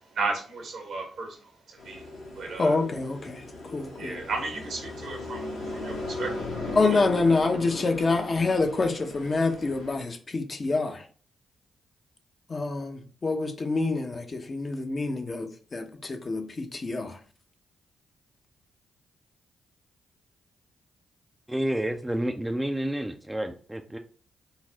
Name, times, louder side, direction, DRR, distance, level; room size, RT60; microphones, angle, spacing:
voice 1, 0.1-1.4 1.7-2.1 2.3-2.8 4.0-7.0, right 3 dB, 65° right, 0.9 m, -34 dB
sound 1, 1.8-10.0, left 2 dB, 80° left, 1.2 m, -37 dB
voice 2, 2.6-4.2 6.7-11.0 12.5-17.2, left 3 dB, 40° left, 0.5 m, -27 dB
voice 3, 21.5-24.0, right 1 dB, 10° right, 0.3 m, -29 dB
3.9 x 2.0 x 2.7 m
hypercardioid pair, 40°, 0 cm